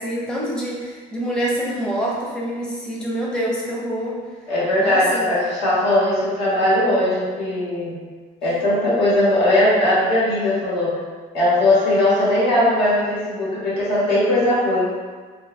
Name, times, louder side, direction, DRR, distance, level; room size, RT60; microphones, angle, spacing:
voice 1, 0.0-4.2 4.8-5.2, equal, 5° left, -5 dB, 0.6 m, -26 dB
voice 2, 4.5-7.9 8.4-11.0 11.3-14.9, left 1 dB, 80° left, -8 dB, 1.5 m, -19 dB
2.9 x 2.6 x 3.1 m, 1.5 s
cardioid pair, 110°, 17 cm